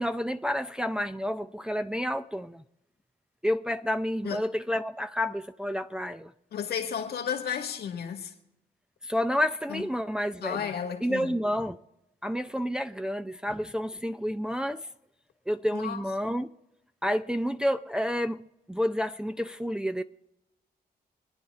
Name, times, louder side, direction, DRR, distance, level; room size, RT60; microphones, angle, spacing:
voice 1, 0.0-2.6 3.4-6.3 9.0-10.7 11.0-11.8 12.2-14.9 15.5-16.5 17.0-20.0, equal, 5° right, 0.5 m, -30 dB
voice 2, 6.5-8.3 9.7-9.9 10.4-11.4 15.7-16.1, left 8 dB, 80° left, 1.9 m, -33 dB
26.0 x 9.7 x 3.6 m
cardioid pair, 70°, 16 cm